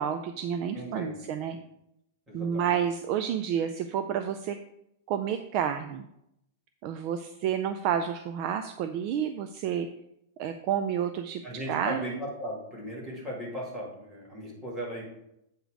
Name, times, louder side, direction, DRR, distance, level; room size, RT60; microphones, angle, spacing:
voice 1, 0.0-1.6 2.3-4.6 5.1-6.1 6.8-9.9 10.4-11.4 11.7-12.2, right 8 dB, 35° right, 8 dB, 0.3 m, -30 dB
voice 2, 0.7-1.2 2.3-2.7 11.4-15.0, equal, 10° right, -5 dB, 1.9 m, -37 dB
8.0 x 4.0 x 4.7 m, 0.81 s
supercardioid pair, 170°, 0 cm